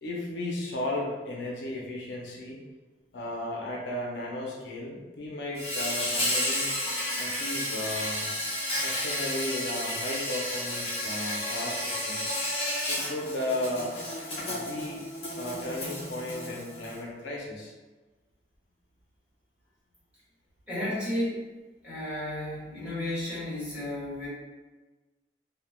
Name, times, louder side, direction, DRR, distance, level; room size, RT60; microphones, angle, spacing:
voice 1, 0.0-2.6 3.1-6.7 7.2-8.3 8.8-12.2 12.9-14.0 14.5-15.0 15.4-17.7, left 1 dB, 80° left, -3 dB, 0.6 m, -35 dB
Insect, 5.5-17.0, left 1 dB, 35° left, 0.9 m, -32 dB
voice 2, 20.7-21.4 21.8-24.3, left 1 dB, 5° right, -11 dB, 1.3 m, -33 dB
3.2 x 2.1 x 2.2 m, 1.2 s
head